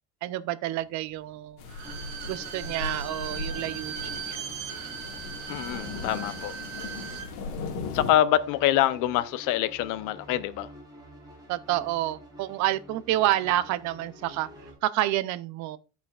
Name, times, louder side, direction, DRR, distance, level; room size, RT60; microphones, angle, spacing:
voice 1, 0.2-1.6 2.3-4.4 11.5-14.5 14.8-15.8, right 14 dB, 55° right, 0.6 m, -29 dB
sound 1, 1.6-8.1, left 4 dB, 80° left, 1.9 m, -38 dB
Bowed string instrument, 1.7-7.3 7.6-7.7, right 8 dB, 90° right, 1.7 m, -38 dB
sound 2, 1.8-14.7, equal, 10° right, 4.5 m, -49 dB
voice 2, 5.5-6.6 7.9-10.7, left 13 dB, 65° left, 0.7 m, -25 dB
16.0 x 5.7 x 2.4 m
cardioid pair, 150°, 34 cm